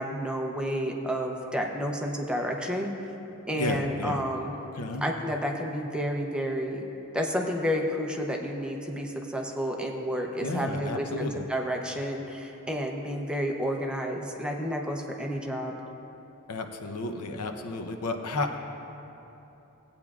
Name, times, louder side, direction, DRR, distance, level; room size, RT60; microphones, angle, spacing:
voice 1, 0.0-2.9 3.5-4.5 5.0-6.8 7.1-15.7, equal, 5° right, 1 dB, 0.6 m, -30 dB
voice 2, 3.6-4.2 4.7-5.1 10.4-11.5 16.5-18.6, left 2 dB, 90° left, 5 dB, 0.7 m, -32 dB
16.5 x 8.6 x 2.4 m, 3.0 s
head